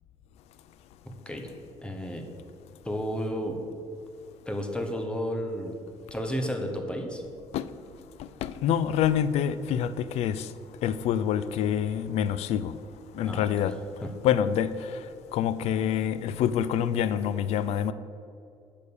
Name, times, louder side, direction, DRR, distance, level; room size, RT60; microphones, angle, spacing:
voice 1, 1.1-1.5 1.8-2.3 2.8-3.6 4.5-5.7 6.1-7.2 13.2-13.5 14.0-14.1, equal, 10° left, 0.8 m, -32 dB
voice 2, 8.4-10.5 10.8-12.7 13.1-13.7 14.2-14.7 15.3-17.9, left 9 dB, 70° left, 0.4 m, -26 dB
6.5 x 5.1 x 6.9 m
cardioid pair, 135°, 11 cm